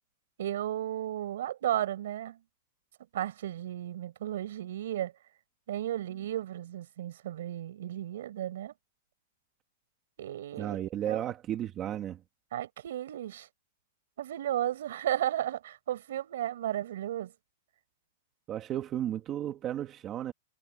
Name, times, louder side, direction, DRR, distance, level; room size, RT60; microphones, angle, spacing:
voice 1, 0.4-2.4 3.1-5.1 5.7-8.7 10.2-10.8 11.1-11.2 12.5-13.5 14.2-17.3, right 12 dB, 65° right, 5.1 m, -34 dB
voice 2, 10.6-12.2 18.5-20.3, right 11 dB, 20° right, 2.1 m, -34 dB
supercardioid pair, 170°, 0 cm